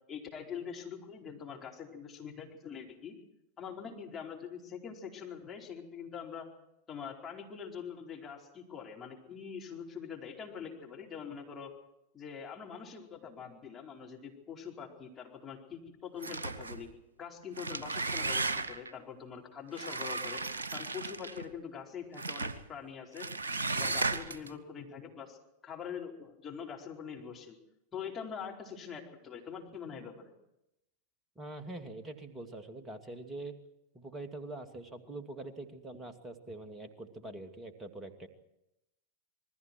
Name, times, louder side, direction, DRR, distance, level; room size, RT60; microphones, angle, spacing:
voice 1, 0.1-3.1 3.6-6.5 6.9-11.7 12.1-16.9 17.2-20.4 20.7-23.3 23.7-25.4 25.6-27.6 27.9-30.3, left 7 dB, 20° left, -1 dB, 4.6 m, -44 dB
sound 1, 16.2-16.8 17.4-18.9 19.7-21.5 22.2-22.6 23.2-24.5, right 3 dB, 70° right, 1.3 m, -35 dB
voice 2, 31.4-33.5 33.9-38.3, right 2 dB, 15° right, 6 dB, 2.6 m, -44 dB
28.0 x 20.5 x 4.6 m, 0.85 s
figure-of-eight pair, 90°, 0 cm